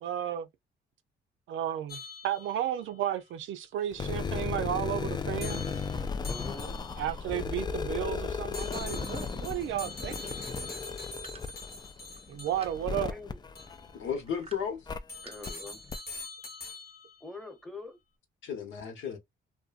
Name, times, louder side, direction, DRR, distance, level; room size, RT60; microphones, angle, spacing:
voice 1, 0.0-0.5 1.5-5.6 7.0-10.4 12.3-13.1, right 10 dB, 80° right, 0.5 m, -33 dB
sound 1, 1.9-2.8 5.4-7.2 8.5-12.9 13.6-13.8 15.1-17.2, left 3 dB, 50° left, 0.8 m, -44 dB
sound 2, 3.9-14.3 14.9-15.0 15.5-15.6 15.9-16.0, left 5 dB, 20° left, 0.3 m, -35 dB
voice 2, 6.2-6.8 13.1-13.4 15.2-15.8 17.2-18.0, left 2 dB, ahead, 0.9 m, -44 dB
sound 3, 11.2-13.3 14.1-15.0 15.2-15.9, right 2 dB, 30° right, 0.5 m, -51 dB
voice 3, 13.9-14.9 18.4-19.2, left 7 dB, 80° left, 1.0 m, -34 dB
2.6 x 2.1 x 2.4 m
cardioid pair, 90°, 20 cm